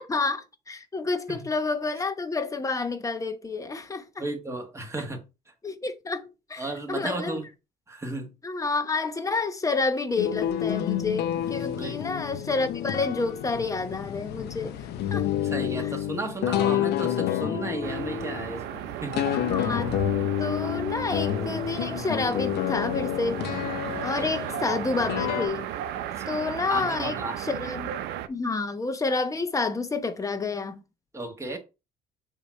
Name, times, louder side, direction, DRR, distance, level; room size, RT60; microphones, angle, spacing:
voice 1, 0.1-4.2 5.6-7.4 8.4-14.8 15.1-15.3 15.8-15.9 19.3-19.9 20.4-23.4 24.0-25.7 26.3-27.9 28.3-30.8, left 3 dB, 20° left, 1.0 m, -29 dB
voice 2, 4.2-5.2 6.6-7.5 7.9-8.3 11.8-12.0 15.4-19.3 24.1-24.3 26.2-26.3 26.7-27.4 31.1-31.6, right 2 dB, 15° right, 1.6 m, -33 dB
sound 1, 10.2-25.5, left 11 dB, 75° left, 0.7 m, -29 dB
sound 2, 17.8-28.3, right 11 dB, 85° right, 0.6 m, -35 dB
7.0 x 2.9 x 4.6 m
cardioid pair, 110°, 17 cm